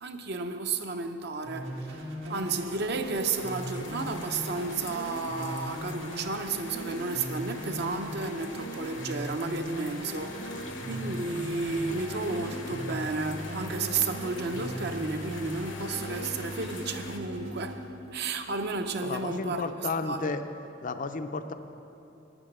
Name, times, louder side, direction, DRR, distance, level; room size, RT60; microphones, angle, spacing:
voice 1, 0.0-20.2, right 4 dB, 60° right, 0.7 m, -33 dB
sound 1, 1.4-19.2, equal, 85° right, 2.0 m, -39 dB
sound 2, 3.3-17.2, left 5 dB, 70° left, 1.0 m, -46 dB
sound 3, 10.2-17.9, equal, 5° right, 0.6 m, -44 dB
voice 2, 19.0-20.4 20.8-21.5, left 3 dB, 45° left, 0.5 m, -32 dB
10.5 x 8.9 x 6.6 m
head